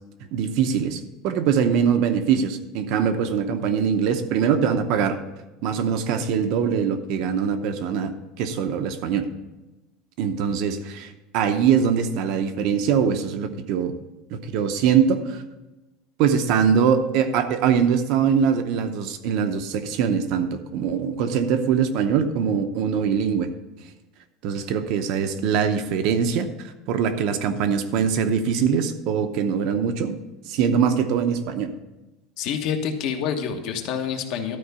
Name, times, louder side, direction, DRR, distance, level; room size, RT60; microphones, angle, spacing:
voice 1, 0.3-5.2 5.6-8.1 8.4-9.3 10.2-13.9 14.3-15.4 16.2-23.5 24.4-30.2 30.4-31.7, right 7 dB, 50° right, 8 dB, 0.7 m, -22 dB
voice 2, 32.4-34.6, left 7 dB, 50° left, 5 dB, 1.1 m, -27 dB
12.5 x 4.6 x 6.7 m, 1.0 s
cardioid pair, 175°, 0 cm